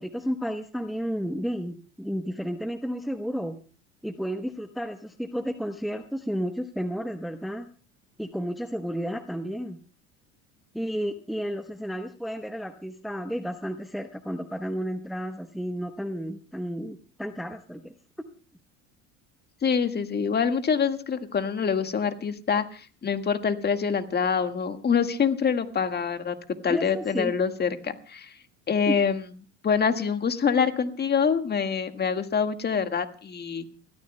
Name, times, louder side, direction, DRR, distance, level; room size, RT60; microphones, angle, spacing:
voice 1, 0.0-3.5 4.0-7.6 8.2-9.8 10.7-17.9 26.7-27.3 28.9-29.0, equal, ahead, 8 dB, 1.0 m, -32 dB
voice 2, 19.6-26.4 26.6-28.3 28.7-29.2 29.6-33.7, left 6 dB, 30° left, 7 dB, 1.7 m, -25 dB
30.0 x 13.5 x 2.2 m, 0.37 s
hypercardioid pair, 80°, 35 cm